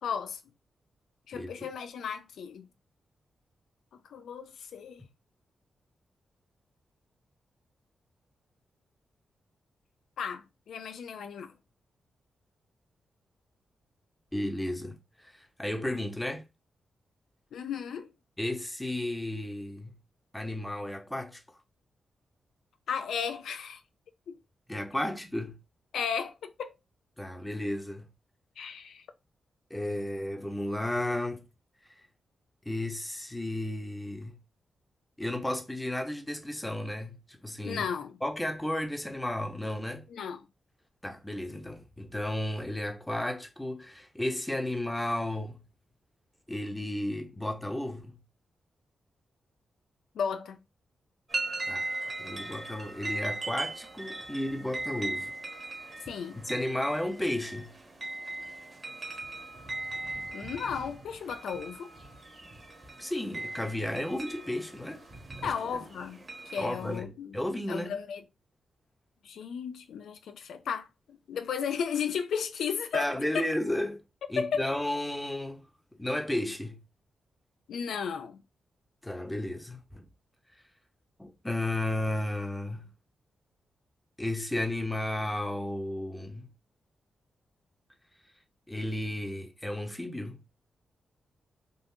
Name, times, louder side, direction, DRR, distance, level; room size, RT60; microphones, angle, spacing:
voice 1, 0.0-0.4 1.3-2.7 4.1-5.0 10.2-11.5 17.5-18.1 22.9-23.8 24.3-24.4 25.9-26.7 28.6-29.0 37.6-38.2 40.1-40.4 50.2-50.6 56.1-56.4 60.3-61.9 65.4-66.2 66.5-67.4 67.7-68.2 69.2-73.0 74.4-74.7 77.7-78.4, left 7 dB, 85° left, 0.3 m, -34 dB
voice 2, 1.3-1.7 14.3-16.4 18.4-19.9 20.3-21.4 24.7-25.6 27.2-28.1 29.7-31.4 32.6-34.4 35.2-37.9 38.2-40.1 41.0-45.6 46.5-48.2 51.7-51.9 52.2-55.3 56.3-57.7 63.0-65.0 65.4-65.5 66.6-67.9 72.9-74.0 74.3-75.7 76.0-76.8 79.0-80.0 81.2-82.9 84.2-86.5 88.7-90.4, left 1 dB, 10° left, 0.9 m, -33 dB
sound 1, 51.3-67.0, right 2 dB, 40° right, 1.2 m, -39 dB
3.7 x 2.4 x 2.7 m
cardioid pair, 65°, 0 cm